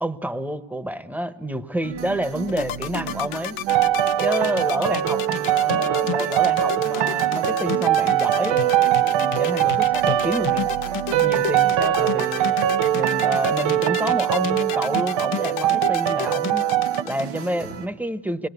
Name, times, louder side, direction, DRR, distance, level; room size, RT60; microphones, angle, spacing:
voice 1, 0.0-3.6 4.2-8.7 9.1-10.7 11.2-12.6 12.9-16.7 17.0-18.5, equal, 5° right, 13 dB, 1.1 m, -28 dB
sound 1, 1.8-17.9, right 7 dB, 90° right, 2.1 m, -37 dB
sound 2, 2.5-17.3, left 13 dB, 75° left, 0.9 m, -31 dB
sound 3, 3.7-17.0, right 12 dB, 65° right, 0.8 m, -22 dB
25.5 x 20.5 x 8.2 m, 1.3 s
supercardioid pair, 80°, 48 cm